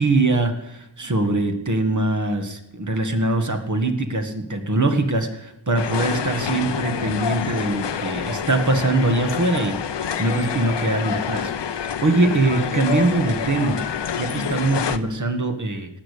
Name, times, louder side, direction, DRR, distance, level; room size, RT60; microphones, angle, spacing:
voice 1, 0.0-13.9 14.2-16.0, right 2 dB, 45° right, 6 dB, 1.8 m, -22 dB
sound 1, 5.8-15.0, left 8 dB, 80° left, 0.8 m, -27 dB
18.0 x 6.7 x 8.6 m, 0.87 s
wide cardioid pair, 85°, 42 cm